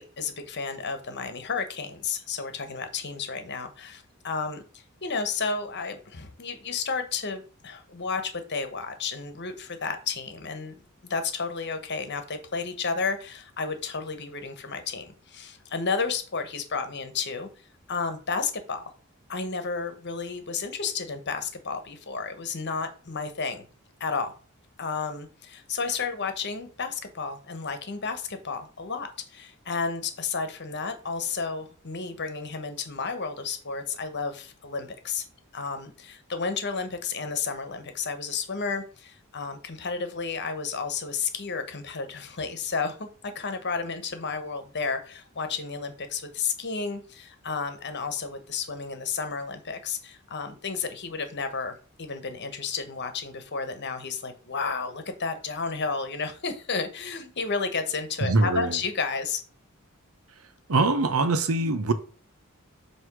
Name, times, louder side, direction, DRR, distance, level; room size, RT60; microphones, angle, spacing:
voice 1, 0.0-17.5 17.9-18.8 19.3-23.6 24.0-24.3 24.8-35.2 35.5-51.7 52.0-59.4, left 5 dB, 50° left, 1.2 m, -32 dB
voice 2, 58.2-58.8 60.7-61.9, right 3 dB, 80° right, 1.0 m, -23 dB
7.9 x 3.1 x 6.1 m
head